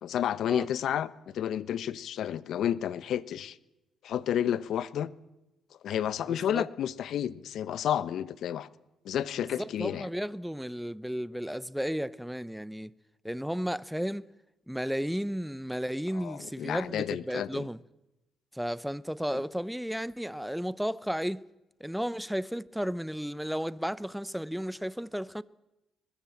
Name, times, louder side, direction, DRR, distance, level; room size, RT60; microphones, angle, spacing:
voice 1, 0.0-3.6 4.0-5.1 5.8-8.7 9.0-10.1 16.1-17.7, left 10 dB, 70° left, 1.1 m, -31 dB
voice 2, 6.3-6.7 9.4-12.9 13.2-14.3 14.7-17.8 18.5-21.5 21.8-25.4, equal, ahead, 0.8 m, -33 dB
22.0 x 21.0 x 7.3 m
cardioid pair, 90°, 0 cm